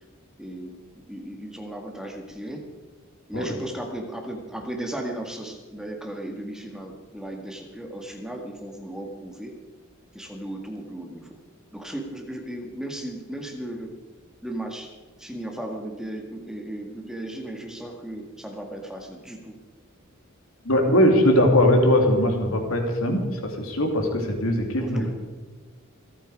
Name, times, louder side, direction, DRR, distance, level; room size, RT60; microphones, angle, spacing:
voice 1, 0.4-0.8 1.1-2.6 3.3-9.5 10.1-11.3 11.7-13.9 14.4-14.9 15.2-19.6 24.5-25.1, right 1 dB, 5° right, 2 dB, 1.9 m, -35 dB
voice 2, 20.6-25.1, left 1 dB, 75° left, 3 dB, 2.8 m, -20 dB
27.0 x 9.2 x 4.8 m, 1.3 s
head